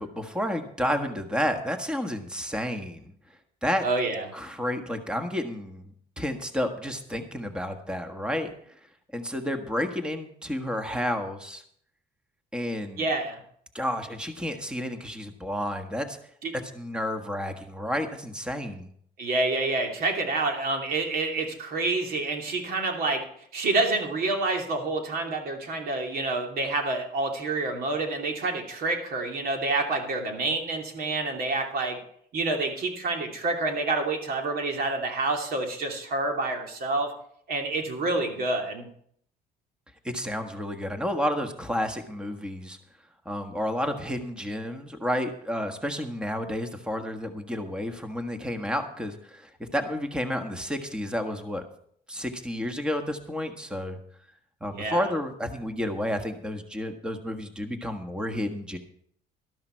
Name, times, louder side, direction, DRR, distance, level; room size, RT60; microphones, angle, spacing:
voice 1, 0.0-3.1 3.6-3.9 4.3-8.5 9.1-11.6 12.5-13.1 13.7-16.2 16.7-18.9 40.0-42.8 43.2-51.7 52.1-54.0 54.6-58.8, equal, 5° right, 6 dB, 1.5 m, -31 dB
voice 2, 3.8-4.2 13.0-13.4 16.4-16.5 19.2-32.0 32.3-37.1 37.5-38.9 54.7-55.1, right 2 dB, 60° right, 3 dB, 2.8 m, -28 dB
12.5 x 12.5 x 4.5 m, 0.64 s
cardioid pair, 110°, 17 cm